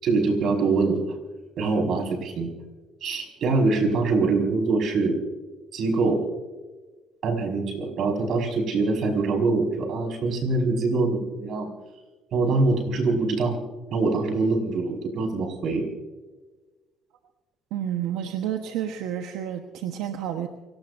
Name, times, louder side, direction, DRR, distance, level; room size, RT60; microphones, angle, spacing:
voice 1, 0.0-1.0 1.6-2.5 3.0-5.2 5.7-6.2 7.2-11.7 12.3-13.6 13.9-15.8, right 3 dB, 60° right, 3 dB, 5.4 m, -24 dB
voice 2, 17.7-20.5, right 10 dB, 85° right, 5 dB, 1.2 m, -30 dB
29.5 x 18.0 x 2.7 m, 1.3 s
cardioid pair, 95°, 0 cm